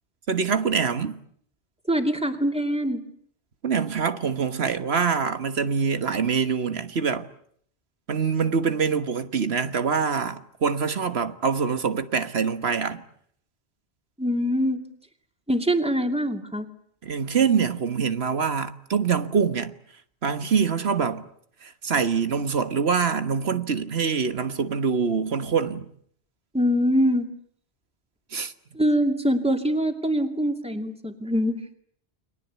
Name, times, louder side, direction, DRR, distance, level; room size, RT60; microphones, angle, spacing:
voice 1, 0.3-1.2 3.6-7.3 8.1-13.0 17.0-19.7 20.2-21.2 21.6-25.8 28.3-28.5, right 6 dB, 70° right, 1.6 m, -24 dB
voice 2, 1.9-3.0 14.2-14.8 15.5-16.7 26.5-27.3 28.7-31.6, equal, 5° right, 2.6 m, -23 dB
29.5 x 22.5 x 8.2 m
omnidirectional pair, 1.1 m